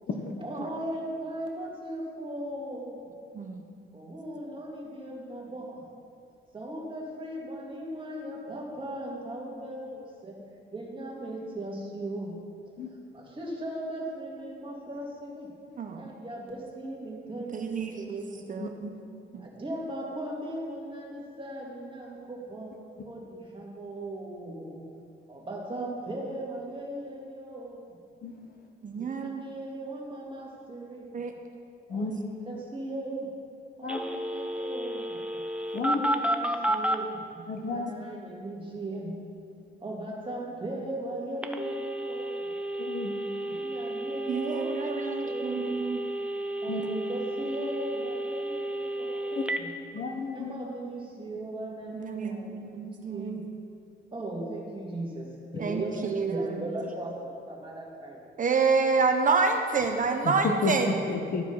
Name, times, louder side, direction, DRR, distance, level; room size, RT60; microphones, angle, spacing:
voice 1, 0.4-3.1 3.9-5.9 6.5-10.4 10.7-12.7 13.1-15.5 15.9-18.4 19.4-22.7 23.1-24.8 25.3-28.0 28.9-31.2 31.9-33.3 33.8-35.2 35.8-37.2 37.7-39.2 39.8-42.5 43.5-45.8 46.6-49.7 50.3-53.4 54.1-58.2, right 1 dB, 25° right, -2 dB, 2.2 m, -38 dB
voice 2, 17.5-18.9 19.3-19.5 28.8-29.4 31.1-31.3 44.3-46.0 51.9-53.4 55.6-56.7 58.4-60.9, right 4 dB, 40° right, 4 dB, 0.9 m, -28 dB
Telephone, 33.9-37.0 41.4-49.6, right 1 dB, 5° right, 0.7 m, -32 dB
voice 3, 37.5-37.9 42.8-43.2 46.7-46.8 49.3-49.4 49.9-50.5 60.2-60.7 61.1-61.5, left 4 dB, 50° left, 4 dB, 1.0 m, -31 dB
13.5 x 4.8 x 5.5 m, 2.4 s
cardioid pair, 90°, 20 cm